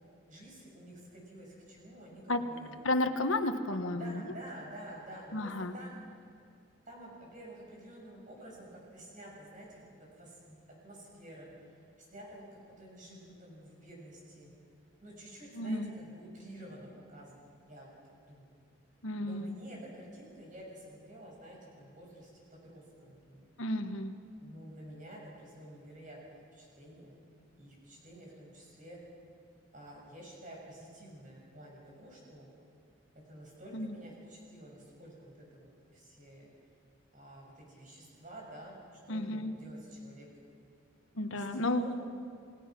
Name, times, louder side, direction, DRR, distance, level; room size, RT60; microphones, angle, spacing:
voice 1, 0.3-2.8 3.9-6.0 6.8-9.8 10.1-10.6 10.8-11.7 12.0-14.5 15.0-17.9 18.3-18.5 19.2-23.5 24.4-27.1 27.6-29.0 29.7-32.5 33.2-36.5 37.1-38.8 39.1-40.3 41.3-41.9, right 1 dB, 40° right, -2 dB, 6.7 m, -50 dB
voice 2, 2.8-4.2 5.3-5.7 15.6-15.9 19.0-19.5 23.6-24.1 33.7-33.9 39.1-39.5 41.1-41.9, left 1 dB, 85° left, 7 dB, 1.4 m, -32 dB
30.0 x 18.0 x 6.1 m, 2.3 s
head